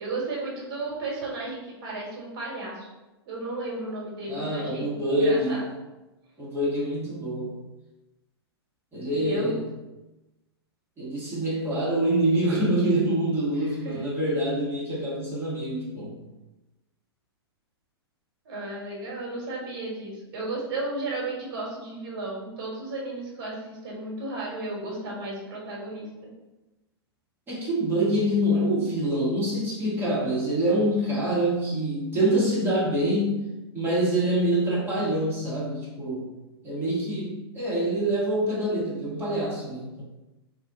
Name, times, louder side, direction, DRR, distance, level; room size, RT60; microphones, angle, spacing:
voice 1, 0.0-2.9 3.3-5.6 9.1-9.5 13.6-14.0 18.4-26.1, right 2 dB, 60° right, -4 dB, 1.3 m, -34 dB
voice 2, 4.3-5.7 6.4-7.5 8.9-9.6 11.0-16.1 27.5-33.4 33.7-36.3 36.6-40.0, right 1 dB, 15° right, -8 dB, 1.3 m, -25 dB
2.5 x 2.4 x 3.5 m, 1.0 s
hypercardioid pair, 120°, 14 cm